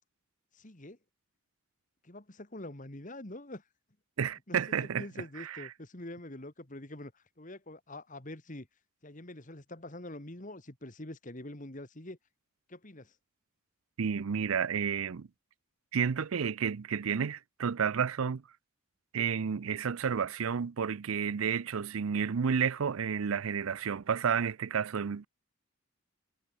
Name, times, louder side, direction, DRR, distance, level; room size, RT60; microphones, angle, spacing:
voice 1, 0.5-1.0 2.0-3.6 4.5-4.6 4.8-8.7 9.0-12.2 12.7-13.1, left 1 dB, 35° left, 2.0 m, -45 dB
voice 2, 4.2-5.0 5.4-5.6 14.0-15.3 15.9-18.4 19.1-25.3, right 7 dB, 80° right, 0.5 m, -31 dB
head